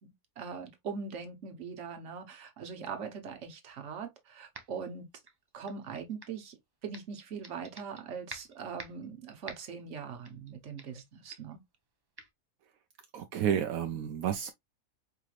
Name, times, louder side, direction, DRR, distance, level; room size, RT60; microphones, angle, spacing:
voice 1, 0.0-5.1 5.5-6.6 6.8-11.6, right 6 dB, 60° right, 1.3 m, -41 dB
sound 1, 4.5-4.9 5.3-6.4 6.9-8.0 8.3-9.1 9.5-9.8 10.2-10.5 10.8-11.1 11.3-11.5 12.2-12.3, right 3 dB, 25° right, 0.5 m, -48 dB
voice 2, 13.1-14.5, right 9 dB, 80° right, 1.0 m, -31 dB
4.8 x 3.2 x 2.4 m
omnidirectional pair, 1.5 m